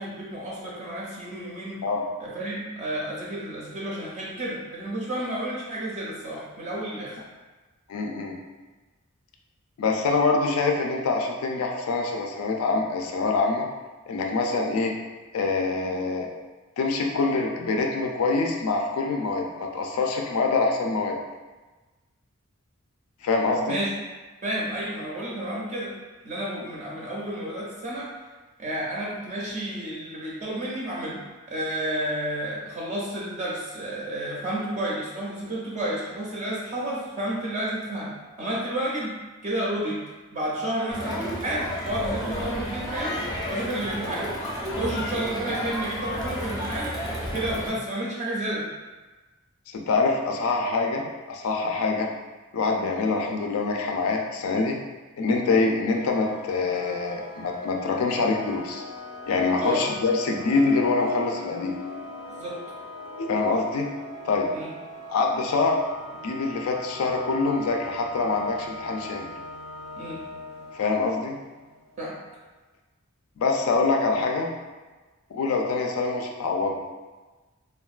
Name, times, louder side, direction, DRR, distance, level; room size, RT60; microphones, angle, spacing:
voice 1, 0.0-1.8 2.2-7.2 23.7-23.9 24.4-25.9 26.2-28.1 28.6-31.2 31.5-39.2 39.4-40.0 40.3-43.2 43.5-44.3 44.7-46.9 47.2-48.7 59.6-59.9 62.3-62.6 64.5-64.7 70.0-70.2 72.0-72.1, right 1 dB, 35° right, -5 dB, 0.4 m, -31 dB
voice 2, 7.9-8.4 9.8-13.7 14.1-14.9 15.3-16.3 16.8-21.2 23.2-23.8 49.7-52.1 52.5-54.7 55.2-58.8 59.3-61.8 63.2-63.9 64.2-64.5 65.1-65.8 66.2-69.3 70.7-71.4 73.4-74.5 75.3-76.8, left 3 dB, 75° left, 2 dB, 0.4 m, -25 dB
Crowd, 40.9-47.7, equal, 20° left, 0.5 m, -31 dB
sound 1, 55.9-72.2, left 2 dB, 90° right, 0.5 m, -41 dB
3.5 x 2.2 x 2.3 m, 1.3 s
head